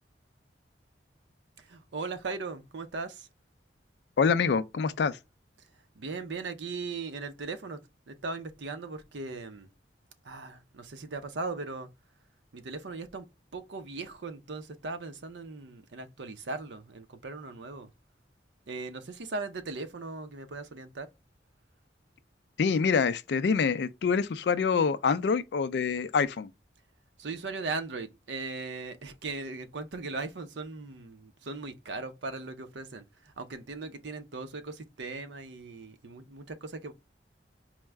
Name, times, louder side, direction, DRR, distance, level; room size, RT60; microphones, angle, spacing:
voice 1, 1.6-3.3 6.0-9.7 10.2-11.9 12.5-13.3 13.5-17.9 18.7-21.1 27.2-36.9, right 3 dB, 80° right, 0.6 m, -38 dB
voice 2, 4.2-5.2 22.6-26.5, left 5 dB, 65° left, 0.4 m, -26 dB
4.5 x 2.1 x 3.3 m
head